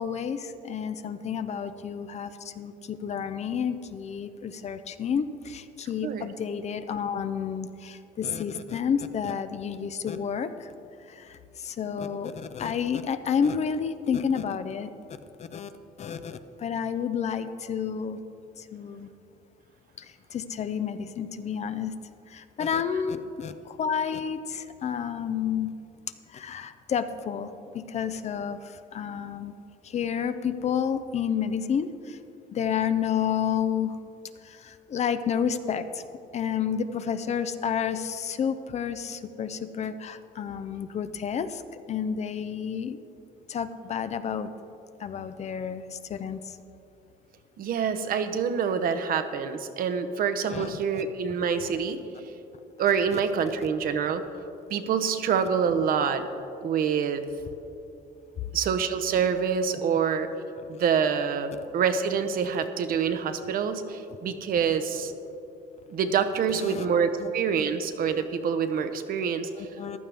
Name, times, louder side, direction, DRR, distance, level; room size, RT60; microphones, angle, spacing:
voice 1, 0.0-10.7 11.1-14.9 15.4-15.7 16.0-18.2 18.6-19.1 20.0-20.1 20.3-21.9 22.3-25.7 26.3-29.5 29.8-32.2 32.5-34.0 34.4-36.0 36.3-41.6 41.9-43.0 43.5-44.5 45.0-46.4 50.5-51.0 53.1-53.2 66.6-66.9 67.2-67.3 69.6-70.0, left 7 dB, 40° left, 11 dB, 0.6 m, -30 dB
voice 2, 47.6-52.0 52.8-54.2 54.7-56.2 56.6-57.2 58.5-60.3 60.7-65.1 65.9-69.7, right 6 dB, 60° right, 9 dB, 0.8 m, -26 dB
15.0 x 11.0 x 3.4 m, 2.7 s
cardioid pair, 110°, 17 cm